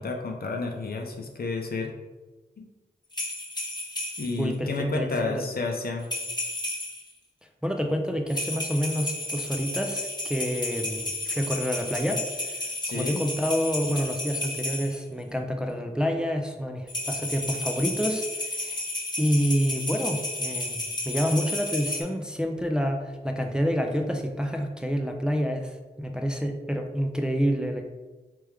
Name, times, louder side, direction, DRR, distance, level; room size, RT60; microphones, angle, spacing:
voice 1, 0.0-1.9 2.6-2.7 4.2-6.1 12.8-13.2, left 3 dB, 55° left, 2 dB, 0.7 m, -30 dB
sound 1, 3.1-4.4 6.0-7.1 8.3-15.0 16.9-22.0, left 2 dB, 25° left, 1.1 m, -32 dB
voice 2, 4.4-5.4 7.6-18.8 19.2-27.9, equal, 5° right, 3 dB, 0.5 m, -28 dB
3.4 x 3.2 x 3.4 m, 1.2 s
cardioid pair, 40°, 18 cm